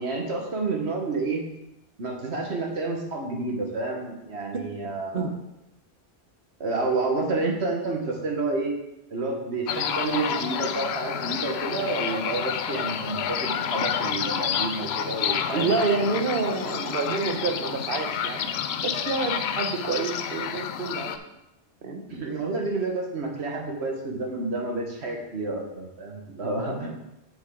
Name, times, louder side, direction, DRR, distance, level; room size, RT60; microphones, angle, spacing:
voice 1, 0.0-1.4 2.0-5.3 6.6-8.7 9.1-15.7 22.1-26.9, right 3 dB, 85° right, 0 dB, 1.7 m, -29 dB
sound 1, 9.7-21.2, left 8 dB, 80° left, 0.8 m, -29 dB
voice 2, 15.5-21.1 21.8-22.0, right 4 dB, 60° right, 4 dB, 1.1 m, -28 dB
7.2 x 7.2 x 3.8 m, 0.90 s
omnidirectional pair, 1.1 m